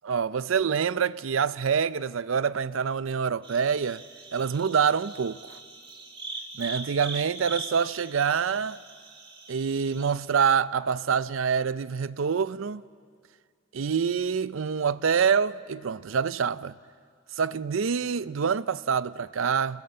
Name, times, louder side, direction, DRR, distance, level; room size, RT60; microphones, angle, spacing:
voice 1, 0.0-4.0 4.3-5.6 6.5-8.8 9.5-12.8 13.7-16.8 17.4-19.8, right 6 dB, 80° right, 0.5 m, -26 dB
sound 1, 3.4-10.1, right 3 dB, 25° right, 2.2 m, -41 dB
26.0 x 19.5 x 7.7 m
head